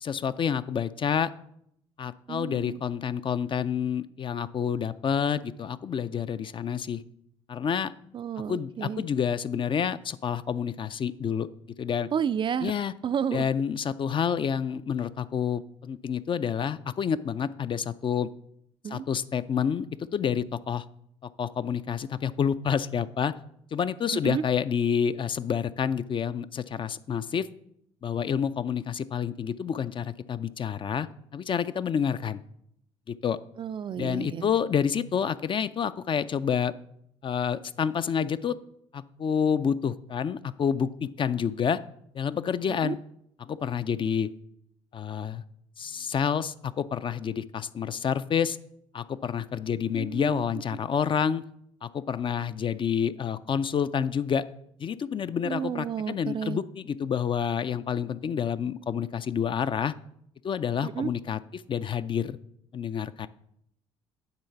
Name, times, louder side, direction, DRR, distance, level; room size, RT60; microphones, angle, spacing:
voice 1, 0.0-1.3 2.0-7.0 7.5-7.9 8.5-11.5 11.8-12.1 12.6-12.9 13.3-18.3 18.9-20.8 21.2-23.3 23.7-27.5 28.0-31.1 31.3-32.4 33.1-33.4 34.0-36.7 37.2-38.6 38.9-41.8 42.1-43.0 43.4-44.3 44.9-45.4 45.8-48.6 48.9-51.4 51.8-54.4 54.8-59.9 60.4-62.4 62.7-63.3, left 7 dB, 35° left, 13 dB, 0.4 m, -28 dB
voice 2, 2.3-2.8 8.1-9.0 12.1-12.7 13.0-13.5 18.8-19.0 24.1-24.4 33.6-34.5 42.7-42.9 50.0-50.4 55.4-56.6 60.8-61.1, right 8 dB, 35° right, 14 dB, 0.3 m, -31 dB
9.6 x 3.8 x 5.8 m, 0.73 s
hypercardioid pair, 55°, 14 cm